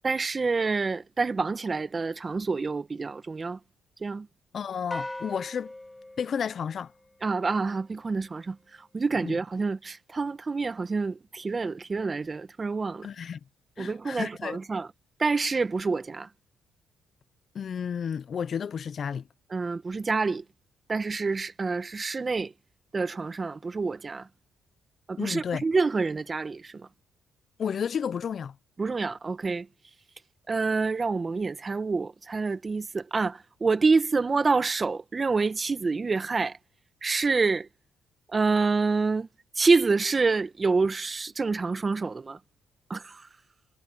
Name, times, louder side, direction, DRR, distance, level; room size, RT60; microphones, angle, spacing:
voice 1, 0.0-3.6 4.0-4.3 7.2-13.1 13.8-14.9 15.2-16.3 19.5-20.4 20.9-22.5 22.9-24.3 25.1-26.9 28.8-29.7 30.5-36.6 37.0-37.7 38.3-39.3 39.5-42.4 42.9-43.3, right 4 dB, 30° right, 1.2 m, -27 dB
voice 2, 4.5-5.7 6.2-6.9 9.2-9.4 13.0-13.4 13.8-14.6 17.5-19.2 25.2-25.6 27.6-28.5, left 7 dB, 50° left, 0.6 m, -32 dB
sound 1, 4.9-7.4, left 1 dB, 10° left, 1.6 m, -40 dB
cardioid pair, 90°, 0 cm